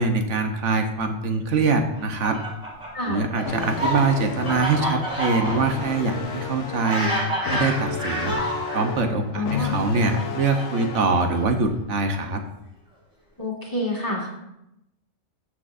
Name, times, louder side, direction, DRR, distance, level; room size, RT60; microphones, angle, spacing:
voice 1, 0.0-2.4 3.1-7.1 7.5-8.4 8.7-12.4, right 3 dB, 65° right, 5 dB, 1.1 m, -23 dB
Fowl, 1.9-8.8 9.6-11.7, equal, 25° right, 3.4 m, -29 dB
sound 1, 3.4-11.4, left 6 dB, 65° left, 1.1 m, -33 dB
voice 2, 9.3-9.7 13.4-14.3, left 1 dB, 15° left, -2 dB, 1.7 m, -27 dB
13.0 x 6.2 x 2.5 m, 0.85 s
omnidirectional pair, 1.4 m